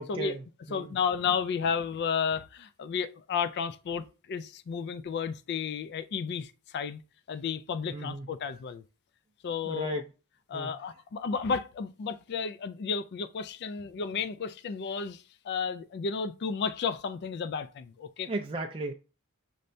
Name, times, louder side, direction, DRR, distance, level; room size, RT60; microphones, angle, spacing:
voice 1, 0.0-1.0 7.9-8.3 9.6-10.1 10.5-10.7 18.3-18.9, right 2 dB, 25° right, 0.4 m, -35 dB
voice 2, 0.7-7.0 7.3-8.8 9.4-10.0 10.5-18.3, left 6 dB, 50° left, 0.3 m, -32 dB
5.5 x 3.2 x 2.6 m
head